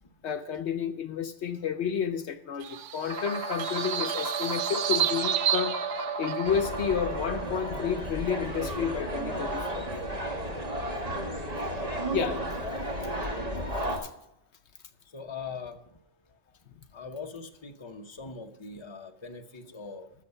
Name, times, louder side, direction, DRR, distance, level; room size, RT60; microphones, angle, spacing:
voice 1, 0.2-5.8 6.2-9.8 12.1-12.4 14.0-14.1, left 7 dB, 70° left, 1.0 m, -31 dB
sound 1, 2.6-6.6, right 10 dB, 80° right, 0.9 m, -31 dB
sound 2, 3.1-8.4, right 3 dB, 55° right, 3.1 m, -34 dB
sound 3, 6.4-14.0, right 1 dB, 30° right, 1.8 m, -33 dB
voice 2, 15.0-16.0 16.9-20.1, left 5 dB, 25° left, 1.0 m, -42 dB
13.5 x 6.9 x 5.5 m
omnidirectional pair, 1.2 m